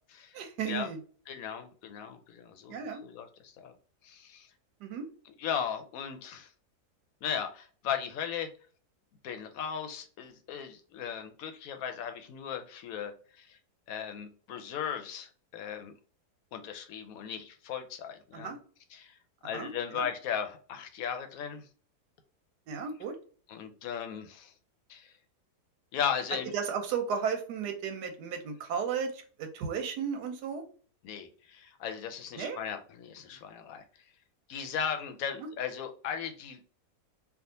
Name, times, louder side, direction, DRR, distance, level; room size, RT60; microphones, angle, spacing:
voice 1, 0.3-1.0 2.7-3.0 4.8-5.0 18.3-18.6 19.5-20.1 22.7-23.1 26.5-30.6 32.4-32.6 35.4-35.5, right 6 dB, 85° right, 6 dB, 1.3 m, -34 dB
voice 2, 1.3-3.7 4.0-4.5 5.4-6.5 7.2-8.5 9.2-13.1 13.4-13.6 13.9-15.9 16.5-18.6 18.9-19.2 19.4-21.7 23.5-24.5 24.9-25.1 25.9-26.5 31.0-33.8 34.5-36.7, left 8 dB, 70° left, 6 dB, 1.0 m, -37 dB
3.5 x 2.4 x 2.7 m, 0.42 s
omnidirectional pair, 1.7 m